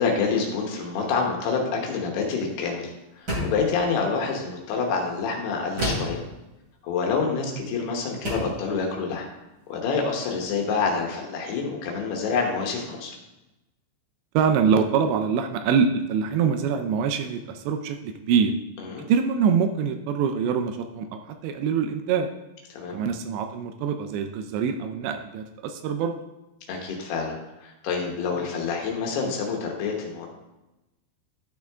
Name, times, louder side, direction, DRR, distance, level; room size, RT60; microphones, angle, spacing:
voice 1, 0.0-6.2 6.8-9.3 9.7-13.1 18.9-19.0 22.7-23.0 26.7-30.3, left 5 dB, 70° left, 1 dB, 3.0 m, -27 dB
sound 1, 3.3-3.7 5.8-6.2 7.5-7.7 8.2-8.6, equal, 25° right, 2.8 m, -28 dB
voice 2, 14.3-18.5 19.1-22.3 22.9-26.1, right 6 dB, 80° right, 7 dB, 2.7 m, -24 dB
12.5 x 6.1 x 3.5 m, 1.0 s
omnidirectional pair, 5.3 m